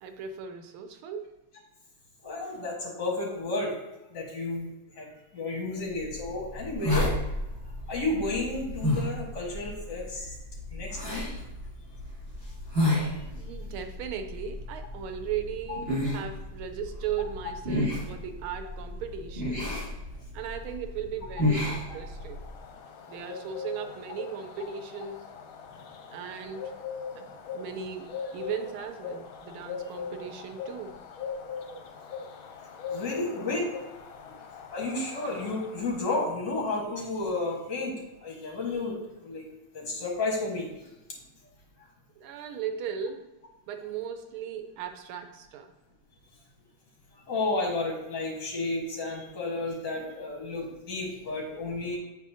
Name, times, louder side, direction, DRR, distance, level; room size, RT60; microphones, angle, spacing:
voice 1, 0.0-1.4 13.3-19.7 20.3-22.4 23.1-25.2 26.1-26.7 27.5-31.0 42.2-43.3 43.7-45.7, right 7 dB, 90° right, 7 dB, 1.5 m, -37 dB
voice 2, 2.2-3.7 4.1-4.7 5.0-7.1 7.9-10.4 10.7-11.2 15.7-15.8 21.9-22.0 32.9-33.6 34.7-38.0 38.2-39.0 39.2-39.4 39.7-40.7 47.3-52.0, left 2 dB, 55° left, -2 dB, 2.1 m, -32 dB
sound 1, 5.9-22.6, left 1 dB, 30° right, 2.3 m, -32 dB
sound 2, 21.7-36.3, left 6 dB, 80° left, 1.5 m, -41 dB
8.8 x 4.1 x 2.7 m, 1.0 s
omnidirectional pair, 2.3 m